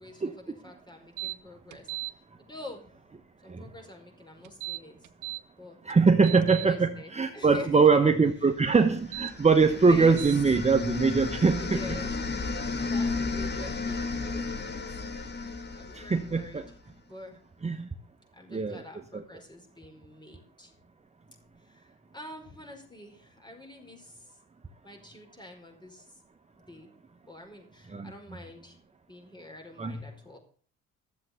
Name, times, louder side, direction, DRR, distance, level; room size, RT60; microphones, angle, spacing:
voice 1, 0.0-1.9 2.4-2.9 3.4-5.1 5.6-5.8 6.6-8.1 8.8-9.3 9.7-10.4 11.3-12.1 12.8-14.8 15.7-16.6 17.1-17.4 18.3-20.7 21.6-24.4 24.8-26.2 26.5-27.0 27.3-28.8 29.1-30.4, left 1 dB, 15° left, 3 dB, 4.8 m, -46 dB
sound 1, 1.2-1.4 1.7-2.1 4.4-5.4 5.9-6.7 9.0-9.3 10.2-10.4, right 18 dB, 85° right, 0.8 m, -37 dB
voice 2, 5.8-11.8 15.9-16.7 17.6-17.9 18.5-18.8 19.1-19.2 27.9-28.1 29.8-30.0, right 4 dB, 20° right, 7 dB, 1.0 m, -23 dB
sound 2, 8.8-16.8, left 4 dB, 35° left, 1.8 m, -33 dB
12.5 x 7.6 x 6.8 m, 0.43 s
cardioid pair, 80°, 31 cm